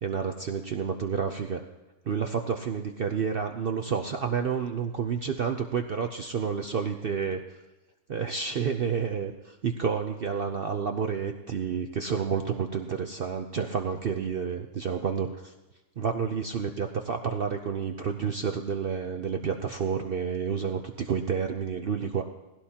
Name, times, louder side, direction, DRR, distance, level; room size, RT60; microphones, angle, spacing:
voice 1, 0.0-1.6 2.1-7.4 8.1-15.5 16.0-22.2, right 6 dB, 75° right, 5 dB, 0.5 m, -30 dB
19.5 x 16.5 x 2.9 m, 1.1 s
omnidirectional pair, 1.8 m